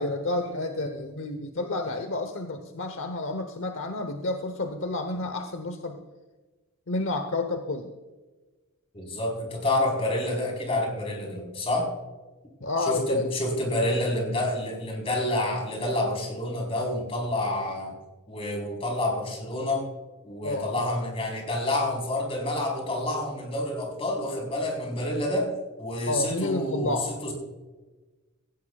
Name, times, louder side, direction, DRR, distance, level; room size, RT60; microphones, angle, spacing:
voice 1, 0.0-6.0 6.9-7.9 12.6-13.3 20.4-20.8 26.1-27.1, left 2 dB, 65° left, 7 dB, 0.9 m, -30 dB
voice 2, 8.9-11.9 12.8-17.9 18.3-19.9 20.2-25.5 25.8-27.0 27.2-27.3, left 1 dB, 25° left, 0 dB, 4.1 m, -28 dB
17.5 x 16.0 x 2.4 m, 1.2 s
head